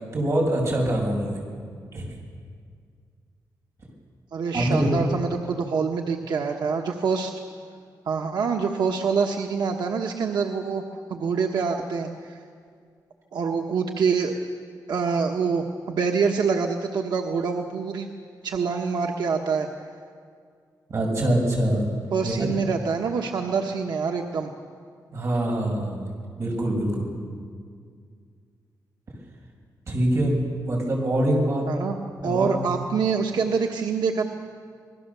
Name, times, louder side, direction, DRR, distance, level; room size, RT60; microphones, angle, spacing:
voice 1, 0.1-1.4 1.9-2.1 4.5-5.1 20.9-21.9 22.2-22.5 25.1-27.1 29.9-31.7 32.2-32.7, right 1 dB, 45° right, 0 dB, 6.1 m, -24 dB
voice 2, 4.3-7.3 8.1-10.8 11.1-12.4 13.3-14.3 14.9-18.1 18.4-19.7 22.1-24.5 31.7-32.0 32.2-34.2, right 5 dB, 85° right, 2 dB, 1.3 m, -25 dB
27.5 x 20.5 x 7.0 m, 2.1 s
wide cardioid pair, 170°, 7 cm